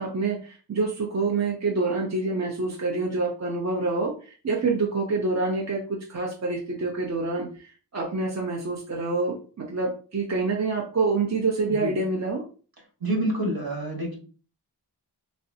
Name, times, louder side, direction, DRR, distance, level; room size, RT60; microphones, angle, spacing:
voice 1, 0.0-12.4, right 3 dB, 40° right, -1 dB, 0.6 m, -27 dB
voice 2, 13.0-14.2, right 1 dB, 60° right, 0 dB, 1.3 m, -27 dB
3.1 x 2.6 x 2.6 m, 0.38 s
wide cardioid pair, 70°, 42 cm